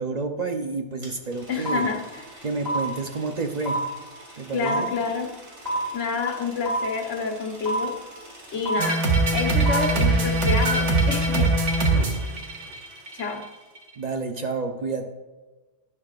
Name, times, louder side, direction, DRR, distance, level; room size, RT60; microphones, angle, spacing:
voice 1, 0.0-1.9 2.4-3.8 4.4-4.9 14.0-15.0, right 4 dB, 40° right, 4 dB, 0.8 m, -29 dB
sound 1, 1.0-1.1 1.3-12.5, right 1 dB, 55° right, 2.6 m, -31 dB
voice 2, 1.5-2.4 4.5-5.3 5.9-7.9 8.5-9.0 9.3-11.8 13.1-13.4, left 5 dB, 85° left, 3 dB, 1.5 m, -29 dB
sound 2, 8.8-13.3, right 2 dB, 75° right, 1.5 m, -22 dB
11.0 x 9.8 x 2.4 m, 1.2 s
omnidirectional pair, 1.2 m